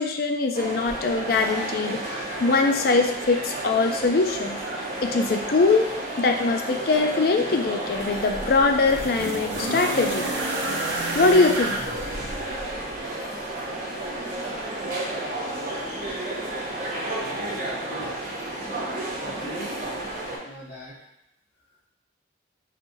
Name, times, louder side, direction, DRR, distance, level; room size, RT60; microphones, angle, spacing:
voice 1, 0.0-4.6 5.0-5.9 6.2-10.3 11.1-11.8, left 3 dB, 55° left, 4 dB, 0.4 m, -22 dB
sound 1, 0.5-20.4, right 1 dB, 45° right, 0.8 m, -32 dB
sound 2, 7.9-13.1 14.1-14.2, right 2 dB, 90° right, 0.6 m, -31 dB
voice 2, 17.9-18.7 19.2-19.8 20.4-21.0, right 1 dB, 80° left, -12 dB, 1.1 m, -40 dB
4.2 x 2.9 x 2.6 m, 0.80 s
head